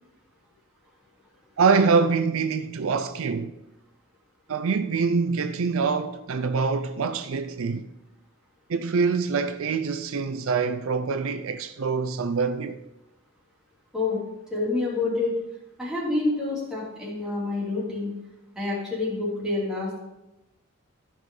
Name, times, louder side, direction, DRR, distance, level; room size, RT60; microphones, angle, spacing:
voice 1, 1.6-3.5 4.5-7.8 8.7-12.8, right 5 dB, 70° right, 0.5 m, -25 dB
voice 2, 14.5-15.3 15.8-18.1 18.5-20.0, left 3 dB, 5° right, 3.0 m, -27 dB
14.0 x 5.4 x 3.8 m
head